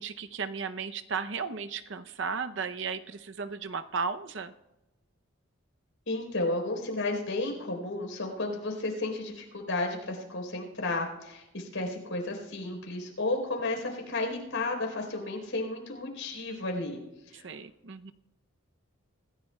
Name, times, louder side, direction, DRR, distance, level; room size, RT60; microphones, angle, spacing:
voice 1, 0.0-4.5 17.3-18.1, right 5 dB, 60° right, 10 dB, 0.6 m, -35 dB
voice 2, 6.1-17.0 17.3-17.5, left 2 dB, 80° left, 2 dB, 3.9 m, -33 dB
25.5 x 15.0 x 2.3 m, 1.0 s
head